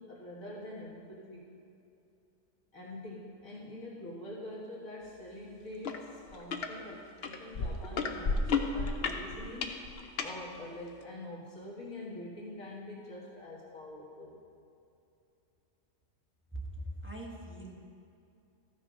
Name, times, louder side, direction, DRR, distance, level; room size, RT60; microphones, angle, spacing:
voice 1, 0.0-1.5 2.7-9.9 10.2-14.4, left 1 dB, 80° left, -5 dB, 2.0 m, -45 dB
sound 1, 5.8-6.0 6.3-6.7 7.2-10.3 11.0-11.1, left 4 dB, 55° left, 0.9 m, -31 dB
voice 2, 16.7-17.8, equal, 10° right, -3 dB, 1.3 m, -42 dB
14.0 x 6.3 x 5.1 m, 2.6 s
omnidirectional pair, 1.4 m